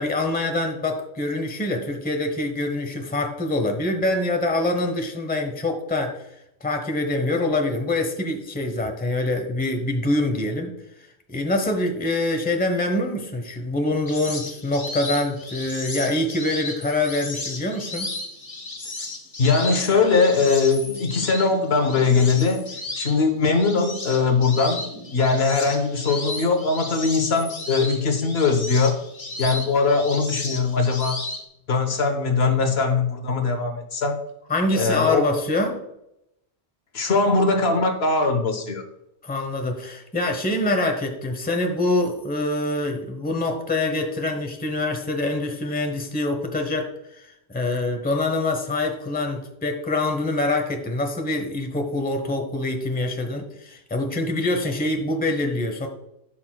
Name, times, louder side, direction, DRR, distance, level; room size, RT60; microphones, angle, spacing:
voice 1, 0.0-6.2 6.6-10.7 11.3-18.1 34.5-35.8 39.2-46.9 47.2-55.9, left 2 dB, 10° left, 4 dB, 0.9 m, -25 dB
sound 1, 14.1-31.4, left 2 dB, 35° left, 1.1 m, -34 dB
voice 2, 19.4-22.7 23.0-24.8 25.1-28.9 29.4-31.2 31.7-34.2 34.7-35.3 36.9-38.8, left 4 dB, 65° left, 6 dB, 1.2 m, -21 dB
13.0 x 6.0 x 2.2 m, 0.82 s
omnidirectional pair, 1.1 m